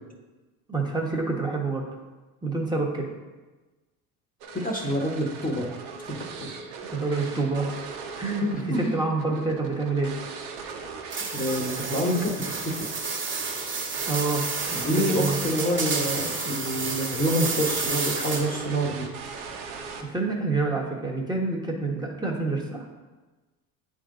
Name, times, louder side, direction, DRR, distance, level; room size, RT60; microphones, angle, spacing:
voice 1, 0.7-1.8 2.4-3.1 6.9-7.9 8.2-8.4 8.7-10.1 14.1-15.4 20.0-22.9, right 3 dB, 10° right, -2 dB, 1.2 m, -27 dB
sound 1, 4.4-20.4, right 5 dB, 80° right, 1.0 m, -39 dB
voice 2, 4.5-5.7 6.1-6.5 8.4-8.9 11.3-12.7 14.7-19.1, equal, 20° left, 0 dB, 1.1 m, -27 dB
sound 2, 11.1-18.7, right 4 dB, 30° right, 1.3 m, -30 dB
9.1 x 3.8 x 3.8 m, 1.2 s
supercardioid pair, 85°, 41 cm